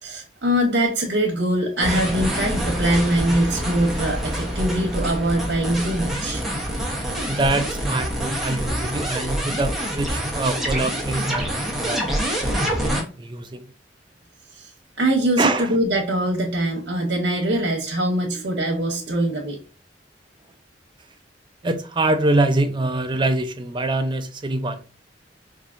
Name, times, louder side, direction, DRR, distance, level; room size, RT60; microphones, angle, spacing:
voice 1, 0.0-6.4 14.5-14.7 15.0-19.6, right 1 dB, 85° right, 0.9 m, -22 dB
sound 1, 1.8-13.0, equal, ahead, 0.9 m, -26 dB
voice 2, 7.3-12.0 12.6-13.7 15.4-15.7 21.6-24.8, right 2 dB, 25° right, 0.5 m, -24 dB
4.7 x 2.7 x 2.5 m
head